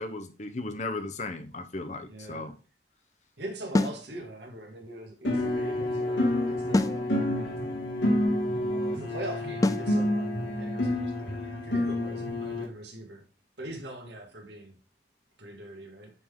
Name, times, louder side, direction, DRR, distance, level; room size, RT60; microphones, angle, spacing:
voice 1, 0.0-2.5, left 2 dB, 40° left, 0.9 m, -36 dB
voice 2, 2.1-2.5 3.4-7.2 8.5-13.2 13.6-14.8 15.4-16.1, right 1 dB, 75° right, 2.0 m, -42 dB
sound 1, 3.7-4.0 6.7-7.0 9.6-9.9, left 2 dB, 20° left, 0.3 m, -24 dB
sound 2, 5.2-12.6, left 1 dB, 90° left, 2.3 m, -28 dB
9.3 x 4.0 x 3.7 m
head